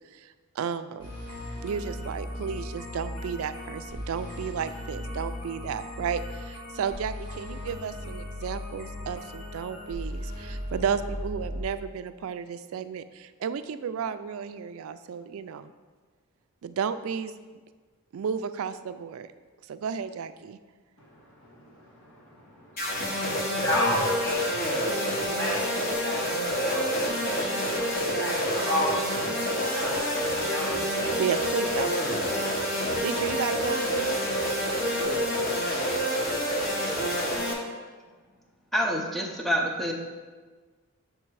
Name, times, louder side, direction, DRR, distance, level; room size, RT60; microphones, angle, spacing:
voice 1, 0.1-1.1 1.6-15.7 16.6-17.4 18.1-19.3 19.7-20.6 31.2-31.9 32.3-34.2, right 7 dB, 65° right, 11 dB, 0.3 m, -33 dB
sound 1, 1.0-11.6, left 1 dB, 90° left, 1.2 m, -37 dB
voice 2, 21.0-24.8 25.2-29.0 29.3-30.2 30.5-30.7, left 1 dB, 60° left, -5 dB, 1.4 m, -33 dB
sound 2, 22.8-37.5, equal, 45° left, 1.2 m, -28 dB
voice 3, 38.7-39.9, equal, ahead, 0 dB, 0.6 m, -27 dB
7.4 x 3.3 x 4.6 m, 1.4 s
head